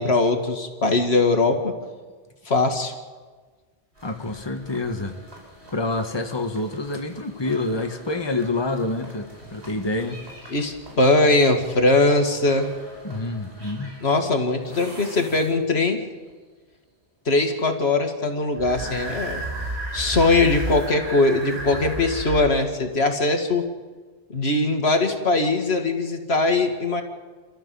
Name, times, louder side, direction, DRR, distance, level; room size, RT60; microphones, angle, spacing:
voice 1, 0.0-1.7 2.5-2.9 10.5-12.7 14.0-16.0 17.3-19.4 19.9-23.6 24.3-27.0, left 2 dB, 75° left, 5 dB, 2.3 m, -21 dB
voice 2, 4.0-5.2 5.7-10.2 13.0-14.0, left 2 dB, 25° left, 5 dB, 1.5 m, -27 dB
sound 1, 4.0-15.9 18.6-22.4, right 1 dB, 80° right, 5.2 m, -37 dB
29.0 x 13.5 x 7.0 m, 1.4 s
omnidirectional pair, 1.1 m